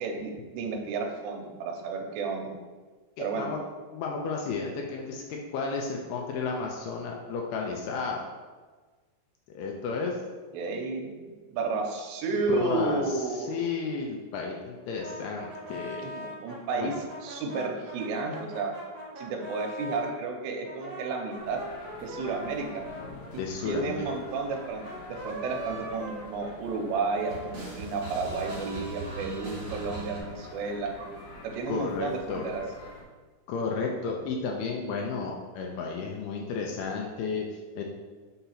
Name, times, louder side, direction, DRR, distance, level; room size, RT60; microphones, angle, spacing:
voice 1, 0.0-2.5 3.2-3.5 10.5-11.1 11.5-13.8 16.0-16.9 17.2-18.7 19.2-21.6 22.0-22.8 23.3-31.1 31.4-32.6, right 3 dB, 85° right, 2 dB, 3.0 m, -32 dB
voice 2, 3.2-3.6 3.9-8.3 9.6-10.2 12.5-16.0 16.8-16.9 23.4-24.1 31.7-32.4 33.5-37.8, left 4 dB, 80° left, 0 dB, 2.4 m, -33 dB
sound 1, 15.0-20.1 20.6-26.9 27.2-30.2, right 1 dB, 50° right, 1.5 m, -41 dB
Departure music on a Ferry, 21.4-33.0, left 3 dB, 60° left, 2.2 m, -47 dB
6.8 x 2.8 x 5.6 m, 1.4 s
omnidirectional pair, 4.9 m